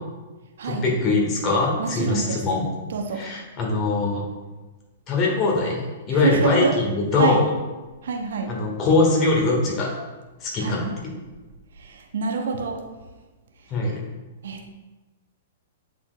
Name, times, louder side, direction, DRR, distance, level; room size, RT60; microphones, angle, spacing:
voice 1, 0.6-2.6 3.1-4.2 5.1-5.8 6.1-7.5 8.5-9.9 10.4-10.8 13.7-14.0, left 3 dB, 30° left, -2 dB, 1.6 m, -22 dB
voice 2, 1.8-2.4 2.9-3.2 6.1-6.7 7.2-7.4 8.0-8.6 10.6-10.9 11.8-12.8 14.4-14.7, right 5 dB, 60° right, 3 dB, 0.8 m, -26 dB
9.5 x 4.2 x 2.3 m, 1.2 s
figure-of-eight pair, 105°, 0 cm